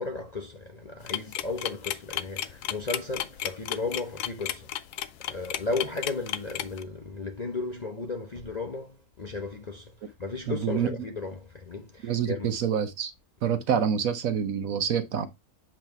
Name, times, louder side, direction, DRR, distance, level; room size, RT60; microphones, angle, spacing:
voice 1, 0.0-4.7 5.3-9.9 10.2-12.5, left 3 dB, 40° left, 0.6 m, -34 dB
sound 1, 1.1-6.8, left 12 dB, 85° left, 1.1 m, -33 dB
voice 2, 10.5-11.0 12.0-13.1 13.4-15.3, right 8 dB, 65° right, 1.0 m, -27 dB
7.6 x 3.2 x 4.5 m
omnidirectional pair, 1.6 m